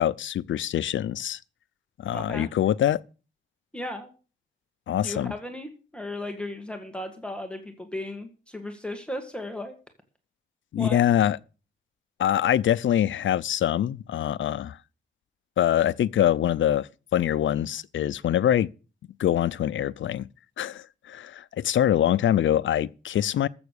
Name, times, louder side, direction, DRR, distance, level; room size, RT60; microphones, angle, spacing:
voice 1, 0.0-1.4 2.0-3.0 4.9-5.3 10.7-11.4 12.2-14.8 15.6-18.7 19.2-20.3 20.6-23.5, left 11 dB, 85° left, 0.6 m, -24 dB
voice 2, 2.1-2.5 3.7-4.1 4.9-9.8 10.8-11.0, left 1 dB, 5° left, 1.8 m, -36 dB
14.0 x 7.1 x 6.6 m
wide cardioid pair, 140°, 19 cm